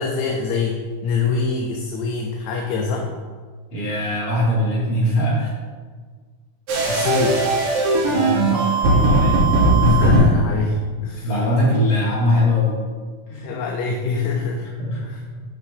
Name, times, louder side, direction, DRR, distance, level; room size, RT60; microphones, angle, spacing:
voice 1, 0.0-3.1 6.9-7.4 9.8-11.3 13.4-14.7 15.0-15.2, left 4 dB, 75° left, 1 dB, 1.9 m, -23 dB
voice 2, 3.7-5.5 7.0-7.1 8.0-9.4 11.2-12.8 13.3-13.5 14.8-15.0 15.3-15.4, left 1 dB, 60° left, -7 dB, 3.3 m, -21 dB
sound 1, 6.7-10.2, right 2 dB, 75° right, 2.6 m, -18 dB
11.0 x 5.7 x 2.7 m, 1.5 s
omnidirectional pair, 3.4 m